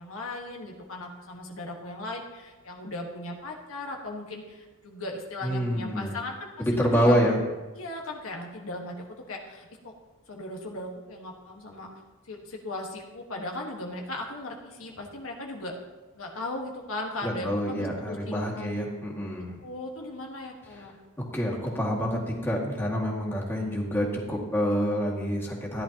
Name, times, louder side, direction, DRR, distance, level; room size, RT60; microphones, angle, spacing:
voice 1, 0.0-7.4 7.7-9.9 10.3-11.9 12.2-15.7 16.1-18.8 19.1-19.3 19.6-21.0, left 2 dB, 80° left, 1 dB, 1.5 m, -38 dB
voice 2, 5.4-6.2 6.6-7.4 17.2-19.6 20.7-20.9 21.3-25.8, equal, 10° left, -4 dB, 2.1 m, -27 dB
14.5 x 10.5 x 2.9 m, 1.2 s
head